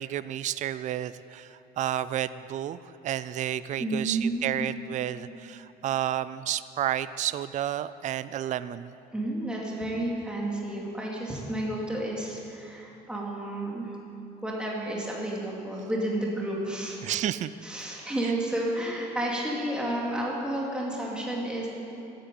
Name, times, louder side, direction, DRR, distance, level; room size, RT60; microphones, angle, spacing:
voice 1, 0.0-8.9 17.0-17.5 18.2-18.3, right 11 dB, 45° right, 15 dB, 0.4 m, -31 dB
voice 2, 3.8-4.6 9.1-13.9 14.4-17.0 17.6-21.7, right 1 dB, 5° right, -3 dB, 2.4 m, -31 dB
12.5 x 9.1 x 9.0 m, 2.9 s
cardioid pair, 110°, 17 cm